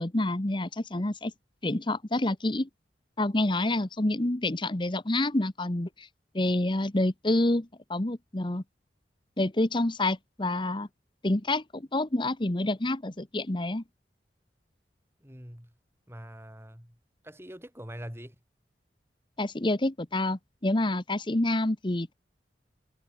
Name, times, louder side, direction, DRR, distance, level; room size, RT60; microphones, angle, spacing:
voice 1, 0.0-1.3 1.6-2.7 3.2-6.1 6.3-8.6 9.4-10.9 11.2-13.8 19.4-22.1, left 1 dB, 25° left, 1.1 m, -28 dB
voice 2, 15.2-15.7 16.1-17.0 17.2-18.4, equal, 15° right, 7.2 m, -44 dB
head